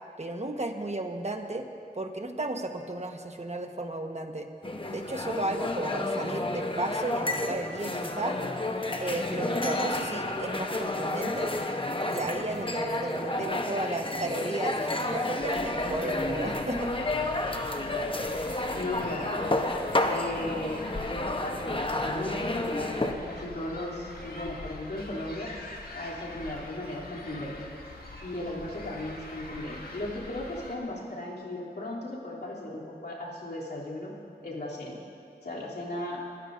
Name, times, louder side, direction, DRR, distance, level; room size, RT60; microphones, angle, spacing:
voice 1, 0.2-1.7 1.9-4.5 4.9-8.4 9.0-11.5 12.1-16.9, right 2 dB, 40° right, 4 dB, 1.3 m, -34 dB
sound 1, 4.6-23.1, left 2 dB, 30° left, 1.0 m, -31 dB
sound 2, 15.4-30.8, left 2 dB, 60° left, 1.9 m, -44 dB
voice 2, 18.7-19.5 20.0-25.5 25.9-27.6 28.2-34.1 34.4-35.0 35.4-36.2, left 1 dB, 80° left, -6 dB, 3.2 m, -36 dB
24.0 x 14.5 x 2.7 m, 2.5 s
wide cardioid pair, 45°, 17 cm